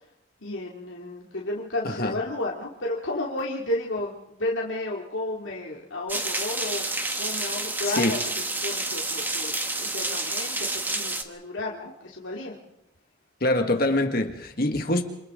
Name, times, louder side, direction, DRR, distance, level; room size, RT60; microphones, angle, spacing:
voice 1, 0.4-12.6, left 1 dB, 85° left, -3 dB, 2.7 m, -32 dB
sound 1, 6.1-11.2, right 2 dB, 10° right, 1.2 m, -29 dB
voice 2, 7.9-8.2 13.4-15.0, left 1 dB, 50° left, 5 dB, 1.8 m, -24 dB
28.5 x 26.5 x 3.8 m, 0.86 s
head